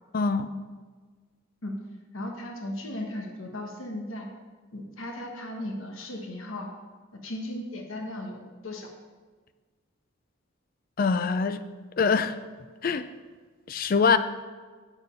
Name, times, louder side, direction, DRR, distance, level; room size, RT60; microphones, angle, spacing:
voice 1, 0.1-0.5 11.0-11.6 12.0-12.3 12.8-13.0 13.7-14.2, left 5 dB, 45° left, 11 dB, 0.4 m, -23 dB
voice 2, 2.1-4.3 4.7-6.7 7.1-8.9, left 1 dB, 80° left, 2 dB, 1.2 m, -36 dB
8.0 x 6.4 x 5.4 m, 1.4 s
head